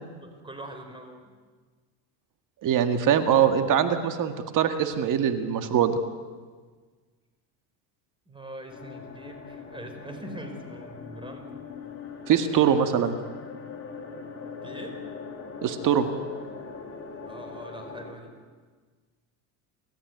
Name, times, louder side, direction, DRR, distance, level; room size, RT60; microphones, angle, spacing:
voice 1, 0.2-1.2 8.3-11.5 12.3-12.9 14.6-15.0 17.2-18.3, right 1 dB, 10° right, 5 dB, 4.6 m, -42 dB
voice 2, 2.6-6.0 12.3-13.1 15.6-16.1, right 8 dB, 45° right, 8 dB, 2.0 m, -22 dB
sound 1, 8.7-18.1, left 5 dB, 30° left, 3.9 m, -41 dB
29.5 x 14.0 x 9.4 m, 1.5 s
supercardioid pair, 120°, 43 cm